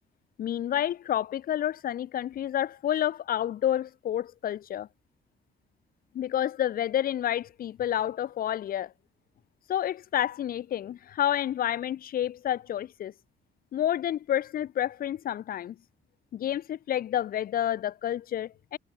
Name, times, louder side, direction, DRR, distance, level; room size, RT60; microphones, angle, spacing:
voice 1, 0.4-4.9 6.1-8.9 9.7-13.1 13.7-15.8 16.3-18.8, left 11 dB, 45° left, 0.4 m, -29 dB
cardioid pair, 90°, 20 cm